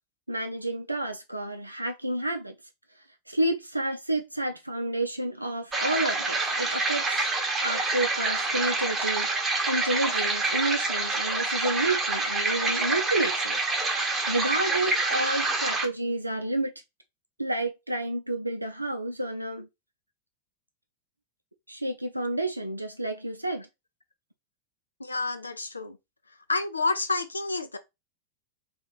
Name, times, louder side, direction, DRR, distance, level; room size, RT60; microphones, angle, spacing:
voice 1, 0.3-2.5 3.3-7.3 7.6-13.6 14.3-16.7 17.4-19.7 21.7-23.7, right 1 dB, 85° right, 0.5 m, -30 dB
sound 1, 5.7-15.9, right 3 dB, 15° right, 1.0 m, -27 dB
voice 2, 25.0-26.0 26.5-27.8, left 3 dB, 80° left, 0.6 m, -29 dB
2.9 x 2.6 x 3.9 m
figure-of-eight pair, 90°, 0 cm